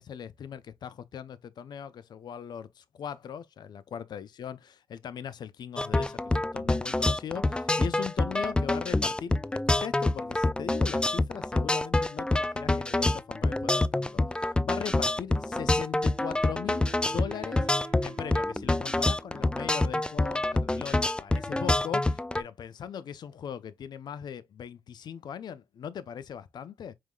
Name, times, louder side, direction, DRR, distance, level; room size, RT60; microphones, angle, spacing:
voice 1, 0.0-26.9, left 8 dB, 65° left, 0.5 m, -39 dB
sound 1, 5.8-22.4, left 2 dB, 10° left, 0.4 m, -27 dB
Wind instrument woodwind instrument, 15.2-20.3, right 6 dB, 65° right, 0.9 m, -49 dB
4.7 x 3.7 x 2.3 m
supercardioid pair, 55°, 8 cm